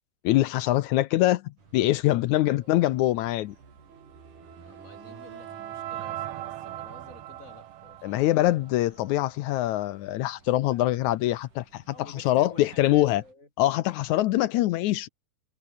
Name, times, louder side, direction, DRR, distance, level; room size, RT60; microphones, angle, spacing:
voice 1, 0.2-3.6 8.0-13.2 13.6-15.1, left 15 dB, 80° left, 1.8 m, -24 dB
sound 1, 1.6-13.3, right 4 dB, 65° right, 7.0 m, -55 dB
Wind instrument woodwind instrument, 3.9-7.5, right 6 dB, 40° right, 3.0 m, -50 dB
sound 2, 4.0-9.2, right 14 dB, 85° right, 1.4 m, -40 dB
voice 2, 4.7-8.4 10.7-10.8 11.9-13.5, left 2 dB, 20° left, 4.1 m, -50 dB
omnidirectional pair, 4.0 m